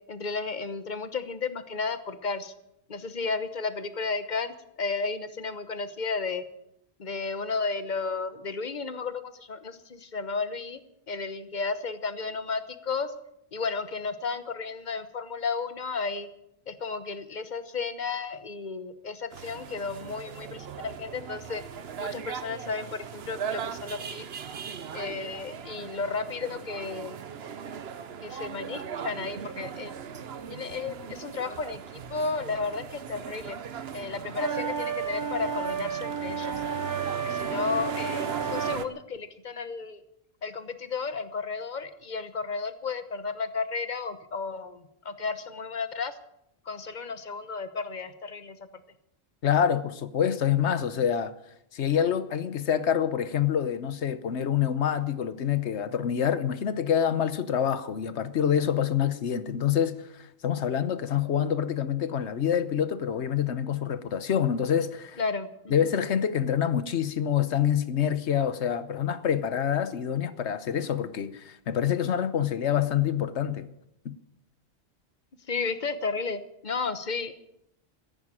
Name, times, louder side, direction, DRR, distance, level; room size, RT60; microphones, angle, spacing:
voice 1, 0.1-2.5 2.9-6.4 7.0-10.8 11.1-13.1 13.5-16.3 16.7-21.6 22.0-24.2 24.9-27.2 28.2-29.9 30.5-33.6 33.9-36.5 37.1-40.0 40.4-46.2 46.6-48.6 65.2-65.9 75.5-77.3, left 4 dB, 45° left, 1.2 m, -33 dB
sound 1, 19.3-38.8, right 7 dB, 65° right, 1.1 m, -38 dB
sound 2, 34.4-38.8, right 6 dB, 30° right, 0.3 m, -32 dB
voice 2, 49.4-51.3 51.7-65.2 65.7-73.7 74.0-74.1, left 9 dB, 80° left, 1.2 m, -26 dB
14.5 x 10.5 x 8.9 m
omnidirectional pair, 1.1 m